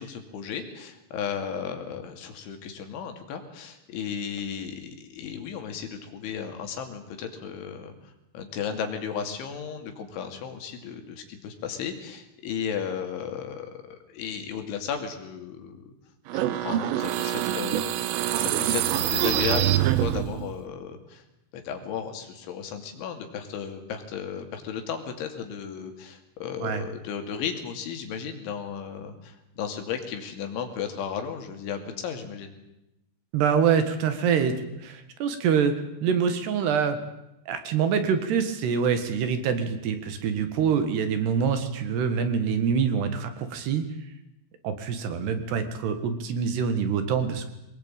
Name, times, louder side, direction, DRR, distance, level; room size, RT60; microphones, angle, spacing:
voice 1, 0.0-7.9 8.3-15.9 16.3-21.2 21.5-32.6, left 7 dB, 75° left, 6 dB, 4.9 m, -34 dB
sound 1, 16.3-20.5, right 12 dB, 85° right, 3.6 m, -25 dB
voice 2, 33.3-34.5 34.8-37.0 37.5-43.8 44.6-47.5, right 7 dB, 65° right, 9 dB, 3.5 m, -25 dB
22.5 x 20.0 x 9.0 m, 0.90 s
omnidirectional pair, 5.6 m